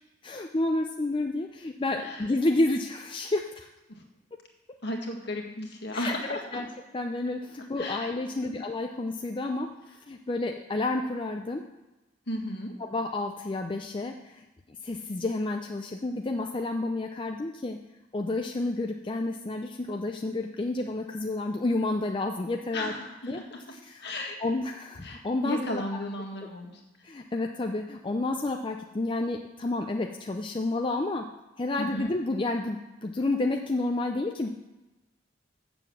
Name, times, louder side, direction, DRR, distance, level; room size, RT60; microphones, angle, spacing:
voice 1, 0.2-3.7 5.9-6.7 6.9-9.7 10.1-11.7 12.8-14.4 14.8-17.8 18.1-22.9 23.3-23.4 23.7-24.0 24.4-25.8 27.0-31.3 31.6-34.5, left 2 dB, 25° left, 3 dB, 0.5 m, -30 dB
voice 2, 2.0-2.3 3.9-4.0 4.8-6.6 7.8-8.5 12.3-12.7 22.7-23.6 24.0-24.4 25.0-26.8 31.8-32.1, left 1 dB, 60° left, 2 dB, 1.7 m, -35 dB
7.9 x 7.0 x 7.1 m, 1.0 s
head